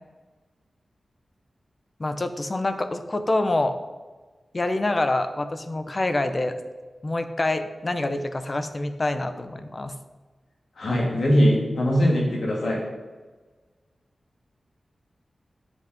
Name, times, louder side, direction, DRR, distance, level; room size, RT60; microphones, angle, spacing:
voice 1, 2.0-3.7 4.5-6.5 7.0-9.9, left 2 dB, 30° left, 9 dB, 0.7 m, -26 dB
voice 2, 10.8-12.8, equal, 85° left, -3 dB, 3.0 m, -21 dB
8.2 x 7.8 x 5.3 m, 1.3 s
wide cardioid pair, 125°, 0 cm